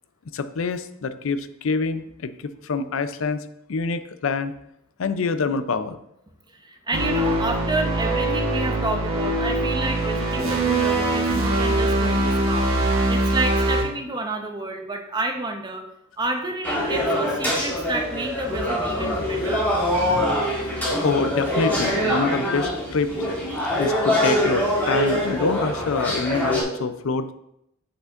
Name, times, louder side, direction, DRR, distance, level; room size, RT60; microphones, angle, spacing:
voice 1, 0.3-4.5 5.0-6.0 21.0-23.1 23.8-27.3, left 4 dB, 70° left, 11 dB, 0.5 m, -26 dB
voice 2, 6.5-15.8 16.2-19.6, right 2 dB, 20° right, 4 dB, 0.7 m, -30 dB
sound 1, 6.9-13.8, right 1 dB, 75° right, 1.3 m, -22 dB
sound 2, 16.6-26.6, equal, 10° left, 2.0 m, -24 dB
8.3 x 5.7 x 2.5 m, 0.78 s
head